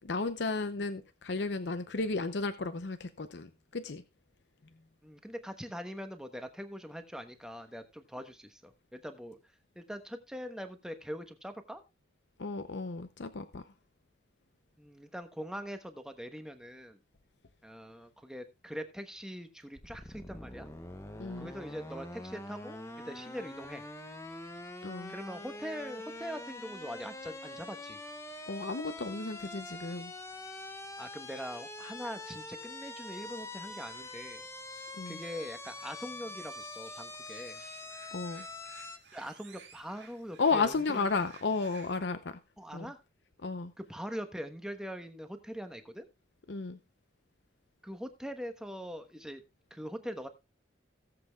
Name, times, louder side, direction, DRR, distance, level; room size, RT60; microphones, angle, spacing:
voice 1, 0.0-4.0 12.4-13.7 21.2-21.5 24.8-25.1 28.5-30.1 34.9-35.2 38.1-38.5 40.4-42.4 42.7-42.9 43.4-43.7 46.5-46.8, left 4 dB, 70° left, 0.7 m, -33 dB
voice 2, 5.0-9.4 9.7-11.8 14.8-17.0 17.6-20.7 21.4-22.8 23.0-23.8 25.1-28.0 31.0-34.5 34.8-37.6 39.1-41.2 42.6-43.0 43.9-46.1 47.8-49.4 49.7-50.3, equal, 5° right, 1.1 m, -42 dB
sound 1, 19.8-39.0, left 2 dB, 15° left, 0.9 m, -44 dB
sound 2, 33.1-42.0, right 6 dB, 65° right, 2.1 m, -58 dB
17.5 x 7.7 x 2.4 m
head